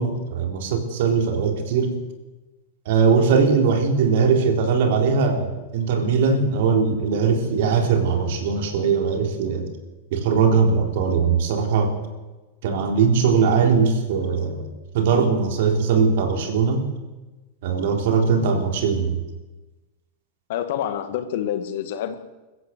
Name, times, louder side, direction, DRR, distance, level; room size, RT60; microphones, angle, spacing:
voice 1, 0.0-2.0 2.9-9.7 10.1-11.9 12.6-14.7 14.9-16.9 17.6-19.2, right 5 dB, 55° right, 5 dB, 4.0 m, -20 dB
voice 2, 20.5-22.2, left 10 dB, 55° left, 9 dB, 2.1 m, -27 dB
24.0 x 15.0 x 8.1 m, 1.1 s
figure-of-eight pair, 90°, 0 cm